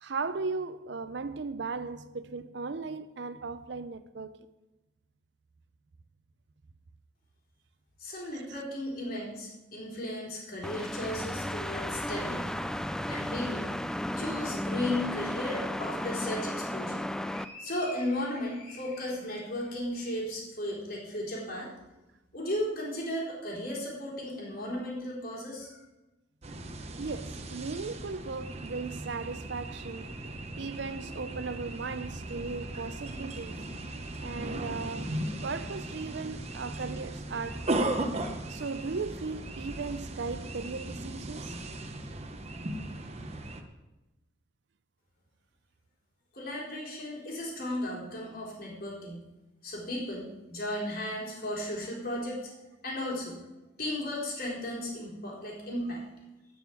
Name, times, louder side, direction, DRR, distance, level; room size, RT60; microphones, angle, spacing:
voice 1, 0.0-4.4 27.0-30.2 30.6-33.6 34.2-35.2 35.4-37.9 38.5-41.6, right 4 dB, 65° right, 0.6 m, -37 dB
voice 2, 8.0-12.6 13.1-13.7 14.2-17.0 17.3-21.7 22.3-25.8 46.3-49.2 49.6-52.6 52.8-53.4 53.8-56.0, left 1 dB, 50° left, 4.0 m, -35 dB
sound 1, 10.6-17.5, left 1 dB, 5° left, 0.3 m, -34 dB
sound 2, 26.4-43.6, right 1 dB, 35° right, 0.9 m, -37 dB
11.0 x 6.3 x 8.5 m
head